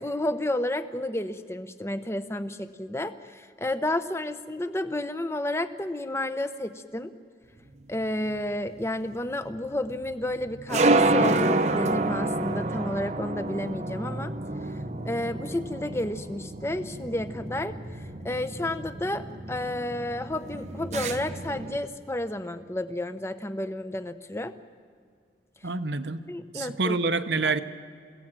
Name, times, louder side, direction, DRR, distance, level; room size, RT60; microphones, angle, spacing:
voice 1, 0.0-7.1 7.9-14.3 14.7-14.8 15.0-24.5 26.3-27.0 27.4-27.5, left 1 dB, 15° left, 11 dB, 0.8 m, -31 dB
sound 1, 7.7-21.8, right 2 dB, 40° right, 0.8 m, -29 dB
voice 2, 25.6-26.2 26.5-27.6, right 3 dB, 75° right, 10 dB, 1.0 m, -27 dB
29.0 x 16.5 x 7.6 m, 2.1 s
head